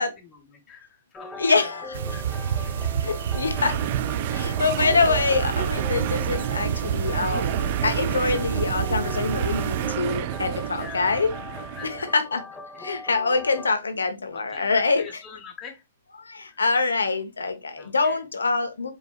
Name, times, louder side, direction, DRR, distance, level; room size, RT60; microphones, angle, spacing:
voice 1, 0.0-1.8 2.1-3.2 10.7-11.2 11.4-12.1 12.7-13.0 14.3-15.8 16.5-16.6 17.8-18.2, left 6 dB, 20° left, 1.1 m, -45 dB
sound 1, 1.2-13.7, left 2 dB, ahead, 0.8 m, -40 dB
voice 2, 1.4-2.0 3.0-3.8 4.3-11.3 11.8-12.4 12.8-15.0 16.3-18.9, left 4 dB, 85° left, 0.9 m, -25 dB
sound 2, 1.9-9.9, right 8 dB, 60° right, 0.8 m, -29 dB
sound 3, 3.6-12.1, right 12 dB, 45° right, 0.3 m, -30 dB
4.8 x 3.3 x 2.3 m
hypercardioid pair, 120°, 0 cm